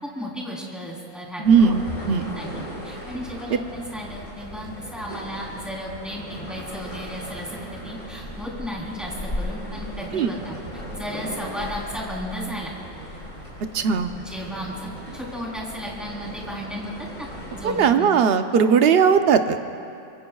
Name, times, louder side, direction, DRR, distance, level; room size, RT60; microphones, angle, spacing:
voice 1, 0.0-1.7 2.1-10.5 10.9-12.7 14.2-18.1, equal, ahead, -4 dB, 3.6 m, -34 dB
sound 1, 1.4-17.9, equal, 90° left, 4.5 m, -37 dB
voice 2, 1.4-2.3 10.1-10.3 13.7-14.1 17.6-19.6, right 6 dB, 55° right, 7 dB, 0.9 m, -18 dB
24.0 x 24.0 x 2.4 m, 2.4 s
omnidirectional pair, 1.3 m